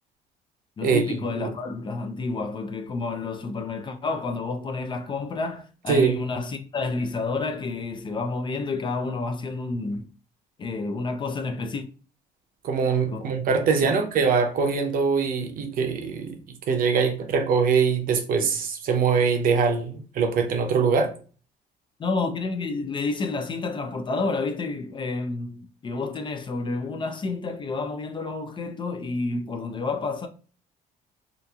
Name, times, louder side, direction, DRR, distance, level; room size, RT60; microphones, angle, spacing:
voice 1, 0.8-10.1 10.6-11.8 13.1-13.2 13.8-14.0 22.0-30.3, left 3 dB, 30° left, 0.4 m, -30 dB
voice 2, 12.6-16.4 16.7-21.1, right 5 dB, 55° right, 0.6 m, -23 dB
2.8 x 2.5 x 2.3 m
cardioid pair, 110°, 17 cm